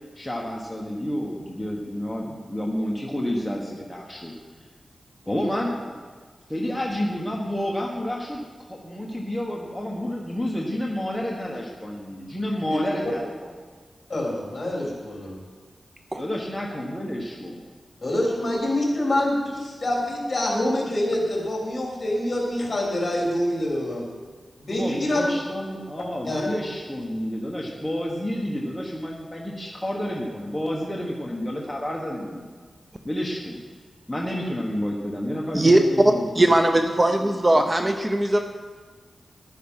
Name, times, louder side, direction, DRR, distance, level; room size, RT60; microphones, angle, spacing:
voice 1, 0.2-4.3 5.3-6.0 6.5-13.5 16.2-17.6 24.7-32.5 33.0-33.6 34.1-36.5, equal, 5° left, -3 dB, 1.3 m, -30 dB
voice 2, 12.7-13.1 14.1-15.4 18.0-24.1 24.6-25.3 26.2-26.5, left 1 dB, 40° left, -2 dB, 3.7 m, -26 dB
voice 3, 35.5-38.4, right 1 dB, 25° right, 6 dB, 0.6 m, -19 dB
11.0 x 9.4 x 5.6 m, 1.5 s
wide cardioid pair, 105°, 0 cm